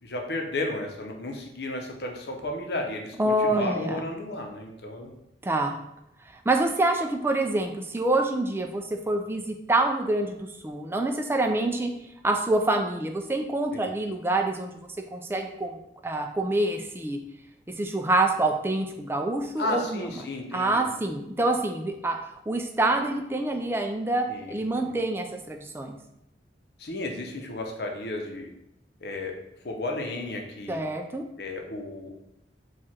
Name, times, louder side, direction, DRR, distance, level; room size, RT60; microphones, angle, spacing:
voice 1, 0.0-5.1 13.7-13.9 19.6-20.9 24.3-24.9 26.8-28.5 29.0-29.3 29.6-30.8 31.4-32.1, left 2 dB, 70° left, 2 dB, 0.8 m, -33 dB
voice 2, 3.2-4.0 5.4-5.8 6.5-11.9 12.2-14.7 15.1-15.8 16.0-17.2 17.8-20.0 20.5-22.2 22.5-26.0 30.7-31.3, right 2 dB, 15° right, 4 dB, 0.4 m, -26 dB
4.7 x 2.4 x 4.3 m, 0.80 s
head